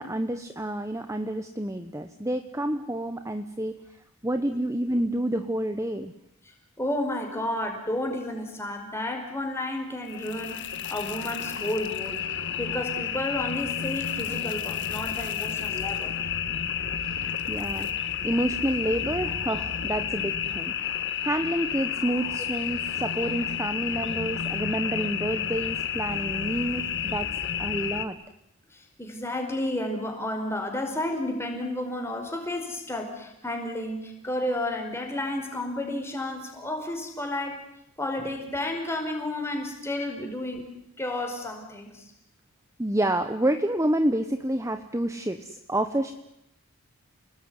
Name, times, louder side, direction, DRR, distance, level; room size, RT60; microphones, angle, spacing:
voice 1, 0.0-3.7 4.2-6.1 17.0-27.3 27.6-28.1 42.8-46.1, right 1 dB, 15° right, 8 dB, 1.0 m, -29 dB
voice 2, 6.8-10.6 10.9-12.2 12.6-16.1 29.0-37.6 38.0-40.7 41.0-42.0, left 1 dB, 10° left, 3 dB, 5.2 m, -31 dB
sound 1, 10.0-28.0, left 8 dB, 55° left, 1.8 m, -31 dB
30.0 x 20.0 x 9.7 m, 0.83 s
head